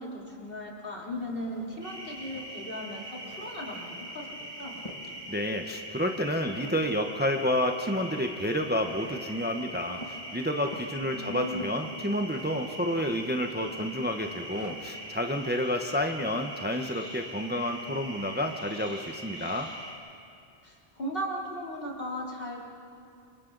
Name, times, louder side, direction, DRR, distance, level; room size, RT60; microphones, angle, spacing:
voice 1, 0.0-4.8 11.1-11.8 20.6-22.6, equal, 60° left, -3 dB, 3.7 m, -37 dB
sound 1, 1.1-15.0, left 1 dB, 30° left, 2.0 m, -50 dB
sound 2, 1.8-19.9, right 1 dB, 55° right, 4.2 m, -42 dB
voice 2, 5.3-19.7, equal, 10° right, 4 dB, 0.9 m, -30 dB
29.5 x 26.0 x 4.0 m, 2.6 s
omnidirectional pair, 1.0 m